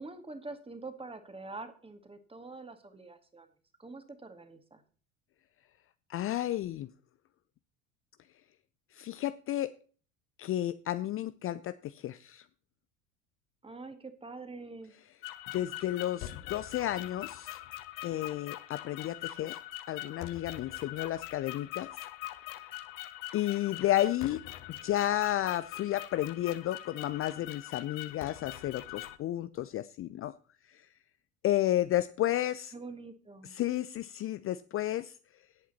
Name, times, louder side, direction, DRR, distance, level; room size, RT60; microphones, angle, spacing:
voice 1, 0.0-3.5 3.8-4.8 13.6-14.9 32.7-33.6, right 3 dB, 15° right, 9 dB, 2.2 m, -45 dB
voice 2, 6.1-6.9 8.9-9.7 10.4-12.5 15.5-17.6 18.0-19.6 19.9-21.9 23.3-24.4 24.8-30.3 30.6-30.9 31.4-32.7 33.4-35.2, left 13 dB, 35° left, 14 dB, 0.6 m, -32 dB
sound 1, 15.2-29.2, left 15 dB, 50° left, 1.2 m, -43 dB
17.5 x 8.4 x 4.3 m, 0.42 s
figure-of-eight pair, 70°, 41 cm